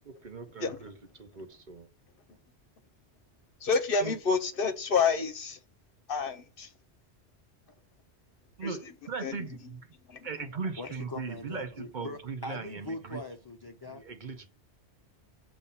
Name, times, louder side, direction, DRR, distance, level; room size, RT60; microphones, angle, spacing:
voice 1, 0.1-0.9 1.2-1.9 4.0-4.1 8.6-9.8 10.2-13.2 13.9-14.5, right 5 dB, 50° right, 0.8 m, -39 dB
voice 2, 3.6-5.6 6.1-6.7 8.6-8.9 9.2-9.5 10.1-10.3, left 5 dB, 60° left, 0.9 m, -29 dB
voice 3, 10.8-14.0, left 2 dB, 35° left, 0.4 m, -41 dB
7.0 x 2.6 x 5.5 m
omnidirectional pair, 1.1 m